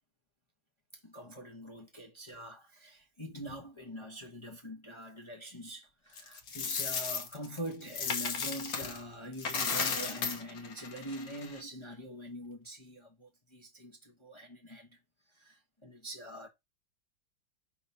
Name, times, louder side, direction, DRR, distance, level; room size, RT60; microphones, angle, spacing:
voice 1, 1.0-15.0 15.3-16.5, equal, 20° left, 0.8 m, -44 dB
Coin (dropping), 6.2-9.0 9.3-11.6, left 5 dB, 50° left, 1.4 m, -35 dB
5.5 x 4.1 x 5.6 m
omnidirectional pair, 2.3 m